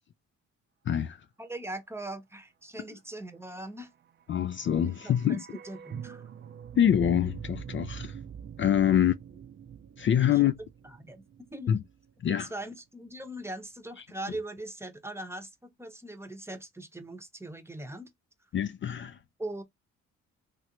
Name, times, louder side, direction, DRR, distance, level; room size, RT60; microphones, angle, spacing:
voice 1, 0.9-1.3 4.3-5.6 6.8-8.2 8.6-9.2 10.0-10.5 11.7-11.8 12.2-12.5 18.5-19.2, left 10 dB, 40° left, 0.4 m, -25 dB
voice 2, 1.4-3.9 5.0-5.4 5.6-6.2 8.9-9.0 10.3-10.5 11.0-11.2 11.5-11.7 12.4-18.1 19.4-19.6, right 1 dB, 10° right, 0.8 m, -40 dB
sound 1, 4.2-12.3 12.6-12.7, right 8 dB, 40° right, 0.5 m, -44 dB
3.2 x 2.4 x 2.9 m
cardioid pair, 90°, 30 cm